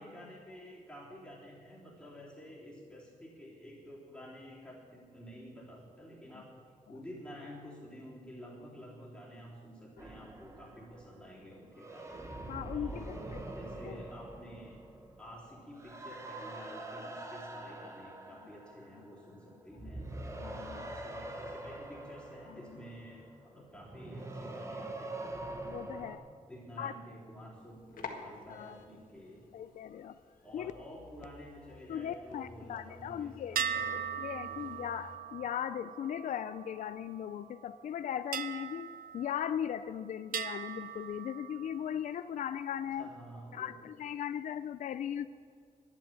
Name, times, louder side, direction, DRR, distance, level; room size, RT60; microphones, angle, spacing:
voice 1, 0.0-12.2 12.7-14.8 15.2-20.2 20.6-25.2 25.9-29.4 30.4-34.0 34.5-34.8 42.8-43.7, equal, 5° left, -6 dB, 3.4 m, -50 dB
sound 1, 10.0-19.4 19.7-26.2, right 2 dB, 20° right, 0.9 m, -44 dB
voice 2, 12.5-13.2 13.8-13.9 19.8-19.9 20.4-20.9 25.6-26.2 26.8-26.9 28.5-28.8 29.5-30.2 30.5-30.7 31.9-33.6 34.2-38.9 39.1-43.1 43.5-45.3, left 9 dB, 60° left, 12 dB, 0.4 m, -38 dB
sound 2, 27.6-35.2, left 4 dB, 80° left, 1.6 m, -52 dB
sound 3, 33.6-37.2 38.3-39.9 40.3-42.0, right 8 dB, 85° right, 0.6 m, -39 dB
11.5 x 10.5 x 7.5 m, 2.1 s
wide cardioid pair, 170°, 14 cm